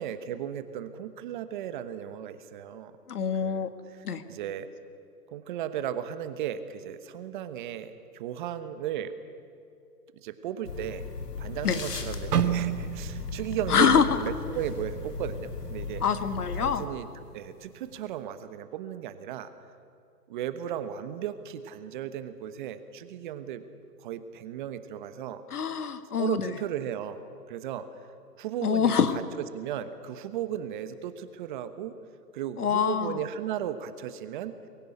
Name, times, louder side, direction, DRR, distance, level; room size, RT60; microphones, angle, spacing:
voice 1, 0.0-2.9 3.4-4.7 5.3-9.1 10.2-11.0 11.4-16.0 16.5-17.1 17.3-19.5 20.3-23.6 24.0-25.4 26.2-27.2 27.5-27.9 28.4-29.2 29.5-32.0 32.3-34.5, right 10 dB, 30° right, 11 dB, 1.2 m, -35 dB
voice 2, 3.1-3.7 4.0-4.2 11.6-11.8 13.7-14.2 16.0-16.8 25.5-26.5 28.6-29.2 32.6-33.2, left 7 dB, 70° left, 10 dB, 1.9 m, -25 dB
sound 1, 10.6-16.9, left 5 dB, 90° left, 2.8 m, -37 dB
sound 2, 12.3-16.3 16.7-17.0 17.6-17.9, right 9 dB, 75° right, 1.4 m, -33 dB
23.5 x 16.0 x 9.8 m, 2.4 s
hypercardioid pair, 145°, 47 cm